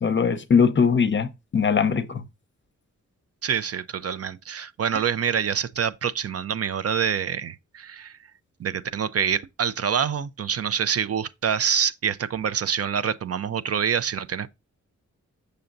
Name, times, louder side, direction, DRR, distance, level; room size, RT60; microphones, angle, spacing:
voice 1, 0.0-2.2, left 6 dB, 40° left, 0.7 m, -21 dB
voice 2, 3.4-8.2 8.6-14.5, right 7 dB, 55° right, 0.5 m, -26 dB
6.9 x 6.8 x 2.5 m
wide cardioid pair, 100°, 30 cm